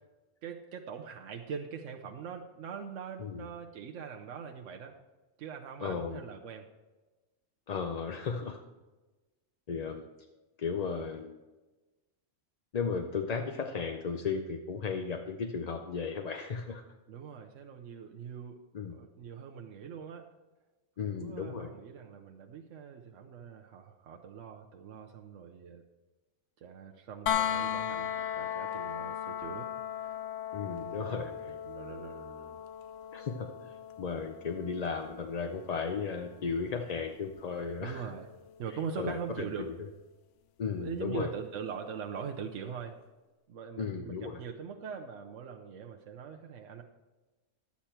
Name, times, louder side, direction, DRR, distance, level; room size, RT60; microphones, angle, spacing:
voice 1, 0.4-4.9 5.4-6.6 17.1-18.6 18.9-20.2 21.0-25.8 26.6-30.2 30.6-32.6 37.8-38.3 38.6-39.7 40.8-43.0 43.5-46.8, right 7 dB, 85° right, 2 dB, 1.1 m, -42 dB
voice 2, 5.8-6.2 7.7-8.6 9.7-10.0 10.6-11.4 12.7-16.8 18.7-19.0 21.0-21.7 30.5-31.3 33.1-38.1 38.7-39.7 40.6-41.3 43.8-44.4, left 5 dB, 45° left, 4 dB, 0.5 m, -35 dB
sound 1, 27.3-39.1 41.0-41.1, left 10 dB, 80° left, 1.0 m, -38 dB
11.5 x 8.5 x 4.4 m, 1.2 s
omnidirectional pair, 1.2 m